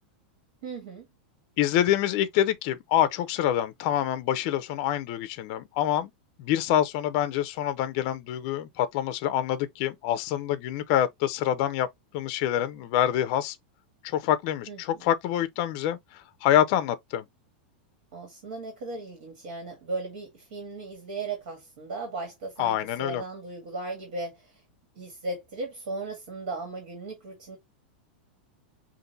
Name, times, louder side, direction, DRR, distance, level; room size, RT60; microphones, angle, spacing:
voice 1, 0.6-1.1 14.7-15.0 18.1-24.6 25.0-27.6, right 3 dB, 65° right, 1.9 m, -37 dB
voice 2, 1.6-6.1 6.4-11.9 12.1-13.6 14.0-17.3 22.6-23.2, left 11 dB, 45° left, 0.5 m, -26 dB
5.2 x 2.6 x 2.5 m
supercardioid pair, 160°, 5 cm